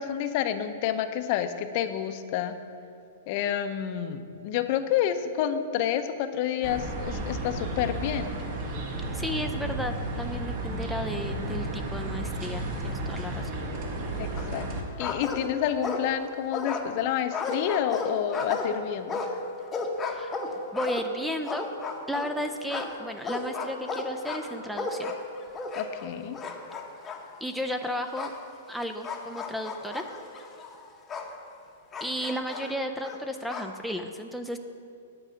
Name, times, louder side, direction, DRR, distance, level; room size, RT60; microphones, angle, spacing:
voice 1, 0.0-2.5 3.3-8.3 14.2-14.6 15.0-19.2 25.8-26.4, left 10 dB, 45° left, 9 dB, 0.6 m, -29 dB
sound 1, 6.6-14.8, right 1 dB, 45° right, 1.5 m, -33 dB
voice 2, 9.1-13.6 20.0-20.4 20.7-21.7 22.1-25.1 27.4-28.3 28.7-30.1 32.0-34.6, equal, ahead, 6 dB, 0.4 m, -33 dB
sound 2, 14.4-14.7 15.0-16.2 16.5-22.3 22.7-26.1 26.3-27.2 28.2-28.4 29.0-31.3 31.9-33.7, left 3 dB, 15° left, 0.8 m, -34 dB
9.9 x 4.8 x 7.9 m, 2.4 s
hypercardioid pair, 150°, 0 cm